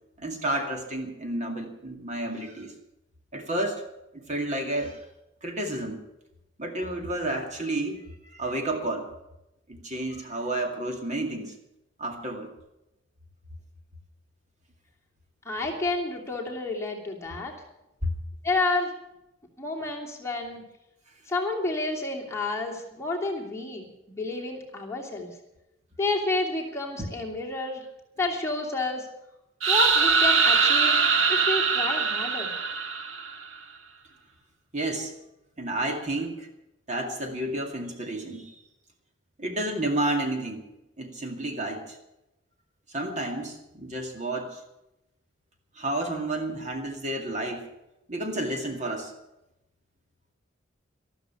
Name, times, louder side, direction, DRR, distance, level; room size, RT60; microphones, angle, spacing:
voice 1, 0.2-2.7 3.3-3.9 4.1-5.0 5.4-6.0 6.6-9.1 9.7-11.5 12.0-12.5 18.0-18.1 27.0-27.1 34.7-35.1 35.6-36.5 36.9-38.5 39.4-40.6 41.0-42.0 42.9-44.6 45.8-47.7 48.1-49.1, right 1 dB, 40° right, 3 dB, 2.2 m, -31 dB
voice 2, 15.4-17.5 18.4-18.9 19.6-20.6 21.3-25.3 26.0-27.8 28.2-29.1 29.7-31.0 31.3-32.5, left 2 dB, 15° left, -1 dB, 2.9 m, -30 dB
sound 1, 29.6-33.4, right 5 dB, 80° right, 1.5 m, -22 dB
13.5 x 13.0 x 7.0 m, 0.89 s
head